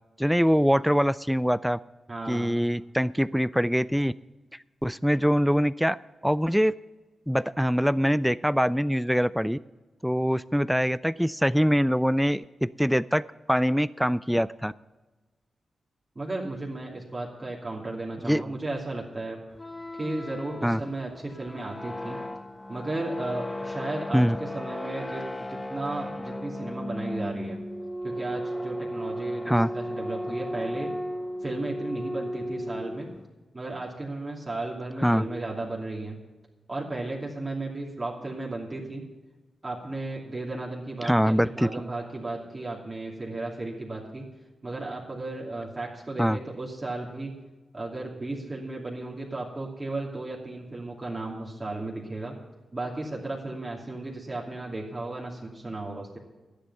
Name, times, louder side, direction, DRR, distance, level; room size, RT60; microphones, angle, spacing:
voice 1, 0.2-1.8 2.3-4.1 4.8-6.0 6.2-6.7 7.3-9.6 10.0-13.2 13.5-14.7 18.2-18.4 20.6-20.8 24.1-24.4 29.5-29.7 35.0-35.2 41.0-41.7 46.2-46.4, equal, ahead, 17 dB, 0.3 m, -23 dB
voice 2, 2.1-2.6 16.1-19.4 20.0-22.2 22.7-27.6 28.0-30.9 31.4-33.1 33.5-36.2 36.7-39.0 39.6-44.3 44.6-47.3 47.7-52.4 52.7-56.2, right 2 dB, 30° right, -3 dB, 2.7 m, -34 dB
sound 1, 19.5-33.3, equal, 15° left, 0.9 m, -35 dB
11.5 x 10.5 x 5.5 m, 1.2 s
cardioid pair, 60°, 0 cm